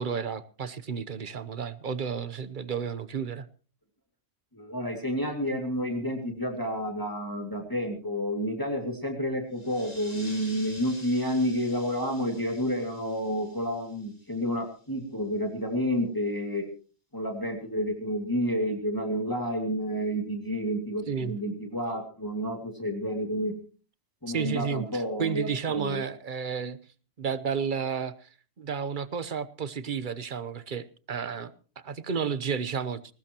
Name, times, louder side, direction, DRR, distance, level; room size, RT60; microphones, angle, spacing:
voice 1, 0.0-3.5 21.1-21.4 24.3-26.8 27.2-28.3 28.6-31.5 31.8-33.0, right 6 dB, 45° right, 14 dB, 1.0 m, -32 dB
voice 2, 4.5-16.7 17.1-23.5 24.2-26.0, equal, 15° left, 3 dB, 2.4 m, -30 dB
sound 1, 9.5-14.7, left 1 dB, 35° left, 3.8 m, -49 dB
21.0 x 19.5 x 3.0 m, 0.37 s
omnidirectional pair, 1.2 m